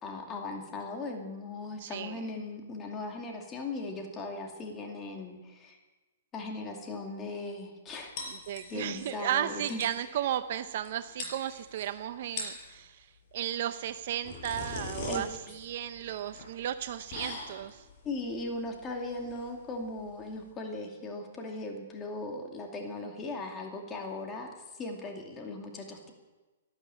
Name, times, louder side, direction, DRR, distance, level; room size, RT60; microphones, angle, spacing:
voice 1, 0.0-5.8 6.3-8.1 8.7-9.8 15.1-15.2 18.0-26.1, left 2 dB, 20° left, 2 dB, 2.5 m, -38 dB
voice 2, 1.8-2.2 8.3-13.1 13.3-17.8, right 11 dB, 55° right, 10 dB, 0.7 m, -34 dB
sound 1, 8.2-9.0 9.3-9.4 9.6-10.0 10.8-10.9 11.2-11.8 12.2-12.7 13.9-20.5, left 3 dB, 45° left, 5.5 m, -42 dB
12.5 x 12.0 x 8.7 m, 1.2 s
hypercardioid pair, 145°, 0 cm